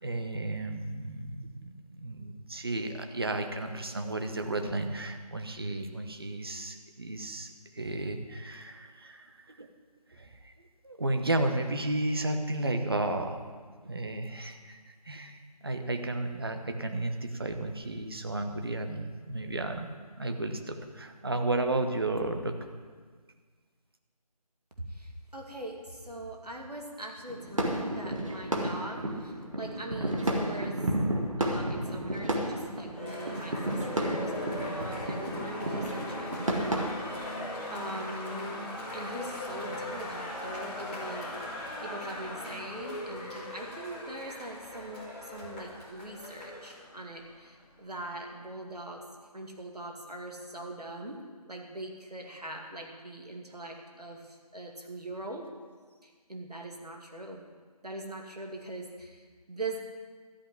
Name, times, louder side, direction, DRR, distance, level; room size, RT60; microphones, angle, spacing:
voice 1, 0.0-9.7 10.1-10.5 10.8-13.4 13.8-19.9 20.2-22.6, right 2 dB, 35° right, 5 dB, 1.0 m, -33 dB
voice 2, 24.9-30.8 31.4-37.4 37.7-41.5 41.8-49.0 49.3-51.2 51.5-55.5 56.0-57.5 57.8-59.8, right 1 dB, 75° right, 1 dB, 2.4 m, -42 dB
sound 1, 27.3-36.9, right 1 dB, 55° right, 1.9 m, -32 dB
Cheering, 32.9-46.8, left 1 dB, 15° left, 1.8 m, -41 dB
sound 2, 33.2-48.0, left 2 dB, 35° left, 2.1 m, -43 dB
13.0 x 5.8 x 9.4 m, 1.6 s
figure-of-eight pair, 165°, 20 cm